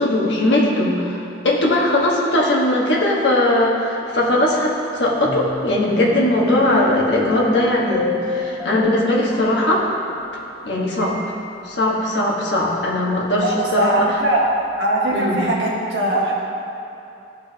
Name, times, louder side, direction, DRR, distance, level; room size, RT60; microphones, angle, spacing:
voice 1, 0.0-9.9 10.6-11.2 11.6-14.1 15.1-15.4, left 1 dB, 65° left, -4 dB, 1.5 m, -19 dB
sound 1, 5.2-10.7 11.0-11.2, left 2 dB, 5° left, 1.0 m, -29 dB
voice 2, 13.4-14.5 14.8-16.3, right 1 dB, 70° right, -5 dB, 1.8 m, -20 dB
15.0 x 5.4 x 2.9 m, 2.8 s
head